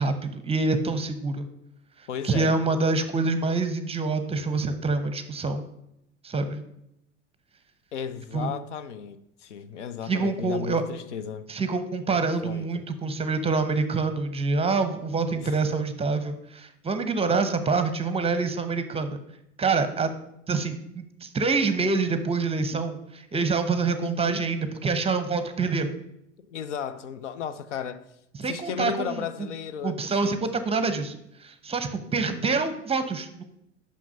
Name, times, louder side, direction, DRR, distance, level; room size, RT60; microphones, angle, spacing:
voice 1, 0.0-1.5 2.0-5.6 6.2-6.6 8.3-8.5 10.1-10.8 11.5-19.2 19.6-20.1 20.5-25.9 28.4-29.5 29.8-33.4, right 4 dB, 15° right, 0.8 m, -26 dB
voice 2, 2.1-2.5 7.9-11.5 12.1-12.2 12.4-12.8 15.3-15.5 23.9-24.4 26.5-28.0 28.5-30.0 30.2-30.6, left 7 dB, 85° left, 0.5 m, -34 dB
6.0 x 5.6 x 5.5 m
hypercardioid pair, 75°, 35 cm